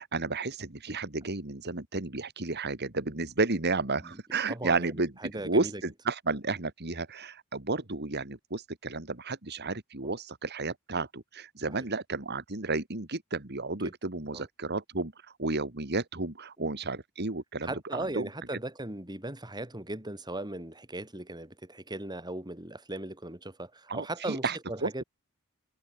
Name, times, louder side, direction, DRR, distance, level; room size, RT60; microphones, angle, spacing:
voice 1, 0.0-5.1 5.4-18.3 23.9-25.0, right 3 dB, 50° right, 2.5 m, -32 dB
voice 2, 4.5-5.8 10.0-10.1 11.7-11.9 13.8-13.9 14.3-14.5 16.6-16.7 17.6-25.0, right 1 dB, 20° right, 5.5 m, -38 dB
head